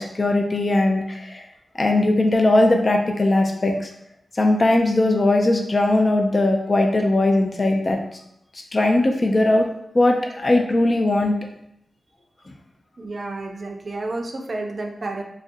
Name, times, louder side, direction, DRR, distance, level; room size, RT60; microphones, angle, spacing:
voice 1, 0.0-1.4 1.7-3.9 4.4-8.0 8.7-9.7 9.9-11.4, left 2 dB, 45° left, 2 dB, 0.4 m, -19 dB
voice 2, 13.0-15.2, right 2 dB, 55° right, 2 dB, 0.4 m, -30 dB
2.4 x 2.0 x 2.6 m, 0.77 s
cardioid pair, 60°, 0 cm